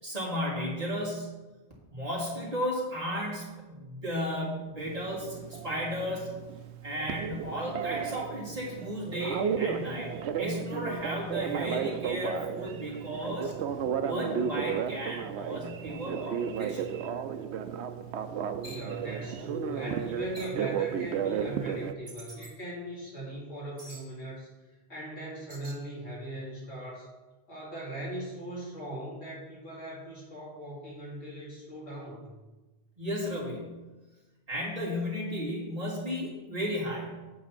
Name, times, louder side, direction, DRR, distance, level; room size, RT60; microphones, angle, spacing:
voice 1, 0.0-1.3 1.9-6.4 6.8-10.1 10.4-13.5 14.0-16.9 33.0-33.7 34.5-37.2, equal, 35° right, -5 dB, 2.8 m, -34 dB
Telephone, 4.8-21.9, right 8 dB, 85° right, 0.9 m, -34 dB
voice 2, 18.6-24.5 24.9-27.1 27.5-32.3, right 1 dB, 85° left, -6 dB, 3.3 m, -39 dB
sound 1, 18.6-18.9 20.4-20.7 22.1-22.5 23.8-24.1 25.5-25.8, right 1 dB, 70° right, 2.6 m, -46 dB
8.5 x 8.0 x 4.3 m, 1.2 s
omnidirectional pair, 1.1 m